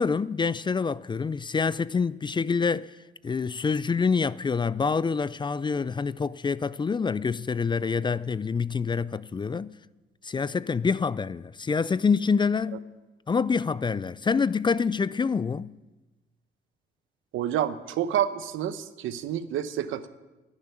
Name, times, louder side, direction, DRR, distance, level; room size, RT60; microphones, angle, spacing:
voice 1, 0.0-2.9 3.2-9.7 10.2-12.9 13.3-15.7, left 5 dB, 25° left, 0.4 m, -26 dB
voice 2, 17.3-20.1, right 10 dB, 85° right, 0.9 m, -29 dB
11.5 x 10.5 x 9.0 m
cardioid pair, 90°, 20 cm